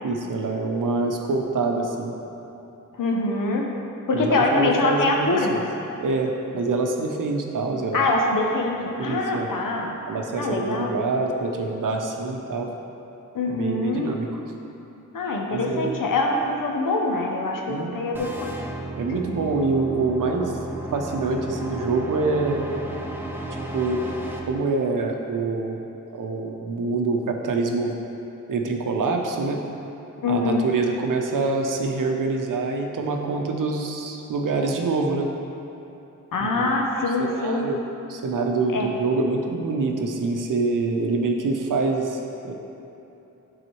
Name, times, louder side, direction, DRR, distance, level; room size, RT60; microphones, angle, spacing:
voice 1, 0.0-2.1 4.1-5.6 6.0-8.1 9.0-9.5 10.1-12.7 13.5-14.3 15.5-16.0 17.7-18.0 19.0-20.6 20.9-22.6 23.5-24.0 24.5-25.8 26.1-27.9 28.5-29.6 30.3-35.3 36.4-36.7 37.2-37.8 38.1-42.5, right 3 dB, 75° right, 2 dB, 0.7 m, -25 dB
voice 2, 3.0-3.7 4.1-5.7 7.9-10.0 10.4-10.9 13.3-14.1 15.1-18.5 30.2-30.6 36.3-37.7 38.7-38.9, left 2 dB, 80° left, 1 dB, 0.7 m, -24 dB
sound 1, 18.1-24.4, right 2 dB, 5° right, 0.6 m, -33 dB
7.9 x 3.9 x 3.1 m, 3.0 s
cardioid pair, 55°, 32 cm